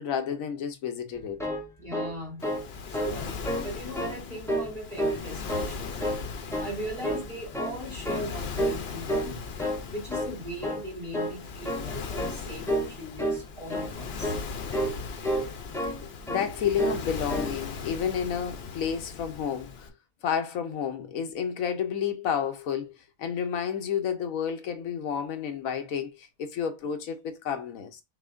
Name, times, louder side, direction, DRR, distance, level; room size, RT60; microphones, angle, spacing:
voice 1, 0.0-1.4 14.7-14.8 16.3-19.9 20.2-22.9 23.2-28.0, left 8 dB, 75° left, 1.1 m, -30 dB
sound 1, 1.1-2.7 2.9-3.2 3.4-4.1 4.5-5.2 5.5-6.2 6.5-6.7 7.0-7.8 8.0-8.3 8.6-8.8 9.1-9.8 10.1-10.3 10.6-10.9 11.1-11.4 11.6-11.9 12.2-12.4 12.7-12.9 13.2-13.4 13.7-13.9 14.2-14.4 14.7-15.0 15.2-16.0 16.3-16.5 16.8-17.0 17.3-17.5, equal, 5° left, 0.5 m, -30 dB
voice 2, 1.8-2.4 2.9-6.0 6.6-9.5 9.9-14.4, equal, 25° right, 1.8 m, -39 dB
Waves surf, 2.4-19.9, left 5 dB, 55° left, 0.9 m, -38 dB
6.1 x 3.0 x 2.6 m
omnidirectional pair, 1.5 m